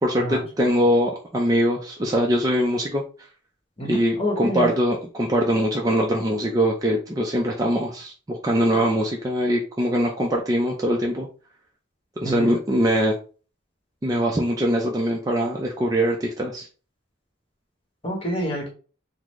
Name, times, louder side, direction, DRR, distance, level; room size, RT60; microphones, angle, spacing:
voice 1, 0.0-3.0 3.8-11.3 12.2-13.1 14.0-16.7, equal, 20° right, -1 dB, 0.4 m, -22 dB
voice 2, 3.8-4.7 12.2-12.5 18.0-18.7, equal, 30° left, 0 dB, 1.0 m, -28 dB
3.6 x 2.0 x 3.0 m, 0.37 s
head